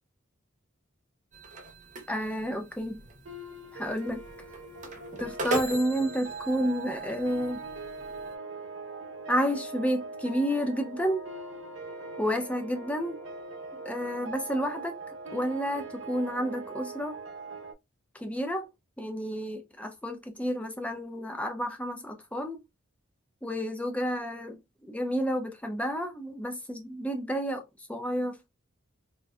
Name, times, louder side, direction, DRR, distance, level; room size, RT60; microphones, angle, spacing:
sound 1, 1.3-8.3, right 2 dB, 35° right, 0.7 m, -39 dB
voice 1, 2.1-3.0 3.7-4.2 5.2-7.6 9.3-11.3 12.2-13.2 13.8-15.0 15.3-17.2 18.1-18.7 19.0-22.6 23.4-27.6 27.9-28.4, equal, 5° left, 0.5 m, -30 dB
sound 2, 3.2-17.7, right 3 dB, 75° right, 0.8 m, -41 dB
3.5 x 2.6 x 2.2 m
head